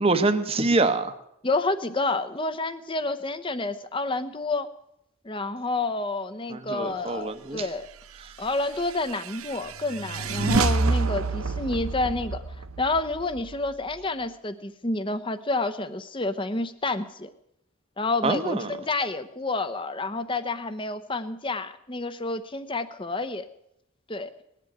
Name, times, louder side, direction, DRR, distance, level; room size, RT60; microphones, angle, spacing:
voice 1, 0.0-1.1 6.5-7.7 18.2-18.7, right 3 dB, 25° right, 9 dB, 0.9 m, -25 dB
voice 2, 1.4-4.7 5.2-7.9 8.4-12.4 12.8-17.3 18.0-23.5 24.1-24.3, left 2 dB, 25° left, 11 dB, 0.8 m, -29 dB
sound 1, 8.4-14.0, right 3 dB, 85° right, 0.8 m, -28 dB
20.0 x 7.6 x 9.3 m, 0.81 s
head